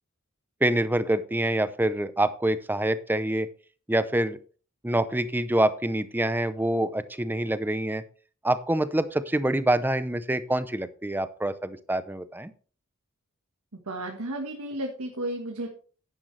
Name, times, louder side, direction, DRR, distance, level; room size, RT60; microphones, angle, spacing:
voice 1, 0.6-3.5 3.9-4.4 4.8-8.0 8.4-12.5, right 1 dB, 10° right, 13 dB, 0.6 m, -26 dB
voice 2, 13.8-15.7, right 1 dB, 80° right, 2 dB, 1.5 m, -33 dB
10.5 x 10.0 x 3.3 m, 0.40 s
head